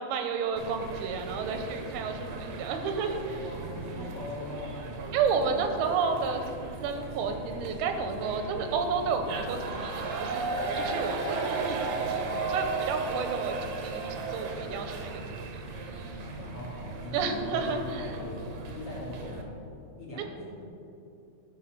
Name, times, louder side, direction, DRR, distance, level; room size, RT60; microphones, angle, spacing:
voice 1, 0.0-3.4 5.1-6.4 6.8-10.5 10.7-11.8 12.1-15.2 17.1-18.1, right 5 dB, 85° right, 6 dB, 2.8 m, -31 dB
sound 1, 0.6-19.4, right 3 dB, 70° right, 1.9 m, -36 dB
voice 2, 3.3-4.8 5.4-5.6 11.8-12.2 16.2-19.4 20.0-20.5, left 1 dB, 45° left, -7 dB, 2.4 m, -40 dB
12.0 x 5.7 x 5.7 m, 2.7 s
omnidirectional pair, 4.4 m